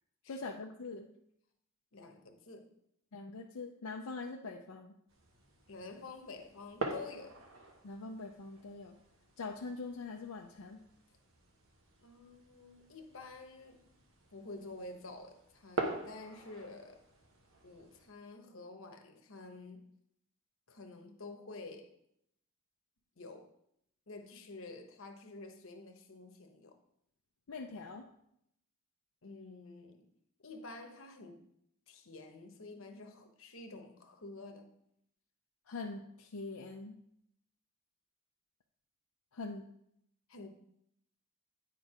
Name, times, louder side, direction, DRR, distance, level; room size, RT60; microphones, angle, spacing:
voice 1, 0.3-1.1 3.1-4.9 7.8-8.9 9.4-10.8 27.5-28.1 35.7-37.0 39.3-39.7, left 3 dB, 85° left, 2 dB, 0.6 m, -43 dB
voice 2, 1.9-2.7 5.7-7.4 12.0-13.9 14.3-17.0 17.6-19.9 20.7-21.9 23.2-23.5 24.1-26.8 29.2-30.1 30.4-31.5 31.9-34.7 40.3-40.5, left 3 dB, 65° left, 5 dB, 1.0 m, -49 dB
sound 1, 5.1-18.1, right 2 dB, 65° right, 1.2 m, -46 dB
9.1 x 4.5 x 5.0 m, 0.75 s
head